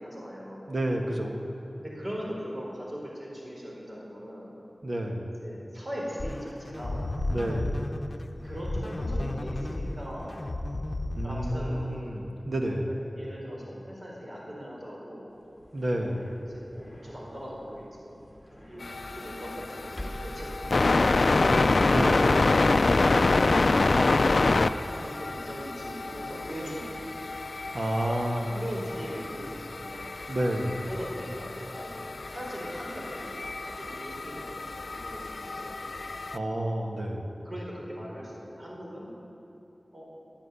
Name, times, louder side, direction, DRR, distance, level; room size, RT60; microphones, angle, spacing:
voice 1, 0.0-0.7 1.8-4.5 5.4-7.0 8.4-10.4 11.2-12.1 13.1-15.3 16.4-18.2 18.5-21.6 23.8-24.4 24.8-27.0 28.5-30.1 30.8-31.9 32.3-36.0 37.4-39.1 39.9-40.1, equal, 45° right, -4 dB, 4.3 m, -40 dB
voice 2, 0.7-1.4 4.8-5.3 7.3-7.8 11.1-12.9 15.7-16.2 21.9-22.3 27.7-28.6 30.3-30.8 36.3-37.3, right 1 dB, 65° right, 2 dB, 1.7 m, -30 dB
sound 1, 6.2-12.0, left 1 dB, 50° left, 0.8 m, -33 dB
sound 2, 15.3-21.7, equal, 5° left, 3.0 m, -46 dB
sound 3, 18.8-36.4, left 3 dB, 75° left, 0.4 m, -27 dB
11.5 x 9.9 x 9.8 m, 2.9 s
wide cardioid pair, 65°, 0 cm